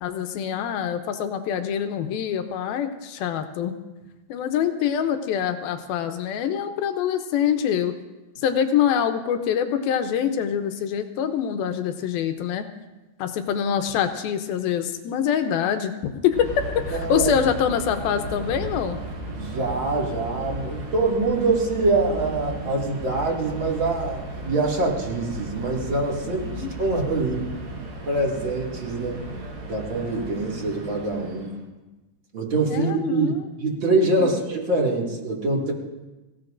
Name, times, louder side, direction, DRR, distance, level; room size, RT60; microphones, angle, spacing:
voice 1, 0.0-3.7 4.3-7.9 8.4-12.7 13.2-19.0 26.2-26.7 32.7-33.4 34.2-34.4, left 8 dB, 75° left, 7 dB, 2.4 m, -25 dB
Subway metro underground, 16.3-31.6, right 1 dB, 85° right, 5.5 m, -35 dB
voice 2, 16.9-17.3 19.3-27.5 28.1-29.2 29.6-31.5 32.3-35.7, right 3 dB, 35° right, -2 dB, 2.4 m, -24 dB
25.0 x 16.5 x 2.6 m, 1.1 s
omnidirectional pair, 4.7 m